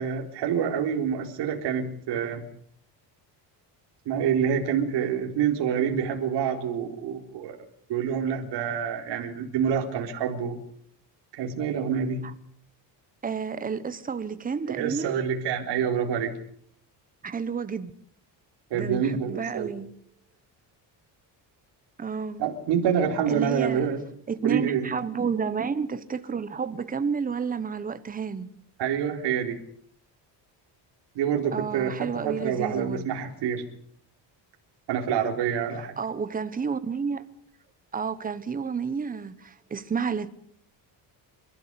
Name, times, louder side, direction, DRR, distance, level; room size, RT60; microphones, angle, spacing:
voice 1, 0.0-2.4 4.1-7.6 7.9-10.6 11.3-12.2 14.7-16.4 18.7-19.7 22.4-24.0 24.4-24.9 28.8-29.6 31.1-33.6 34.9-36.0, right 8 dB, 70° right, 4.0 m, -27 dB
voice 2, 13.2-15.1 17.2-17.9 18.7-19.9 22.0-22.4 23.3-24.0 24.3-28.5 31.5-33.0 35.7-37.3 37.9-40.3, right 6 dB, 20° right, 1.1 m, -31 dB
29.0 x 13.0 x 8.3 m
cardioid pair, 175°, 43 cm